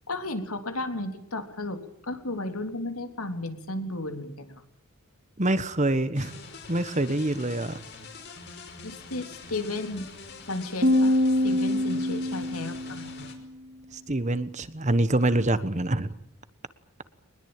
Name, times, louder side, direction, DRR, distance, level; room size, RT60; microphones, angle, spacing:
voice 1, 0.1-4.6 8.8-10.1 10.5-11.2 11.4-13.3, left 2 dB, 85° left, 6 dB, 3.6 m, -34 dB
voice 2, 5.4-6.3 6.7-7.8 13.9-16.1, right 1 dB, 35° right, 13 dB, 1.3 m, -25 dB
sound 1, 6.2-13.3, left 4 dB, 50° left, 5.3 m, -44 dB
sound 2, 10.8-13.2, left 1 dB, 50° right, 3.7 m, -24 dB
23.5 x 21.0 x 8.9 m, 0.74 s
head